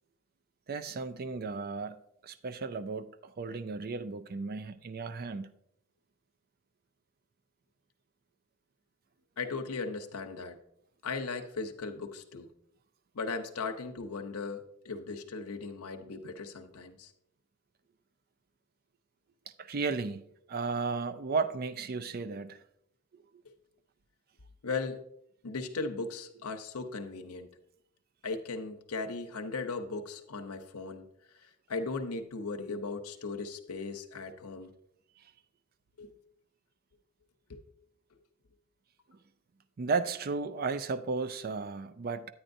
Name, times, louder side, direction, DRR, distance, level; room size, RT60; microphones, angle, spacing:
voice 1, 0.7-2.0 2.2-5.5 19.6-20.2 20.5-22.6 39.8-42.3, right 4 dB, 45° right, 0.4 m, -34 dB
voice 2, 9.4-10.6 11.0-12.5 13.1-17.1 24.6-25.0 25.4-27.5 28.2-31.1 31.4-34.7 36.0-36.1 37.5-37.6, left 4 dB, 85° left, 0.8 m, -37 dB
9.8 x 8.8 x 2.6 m
head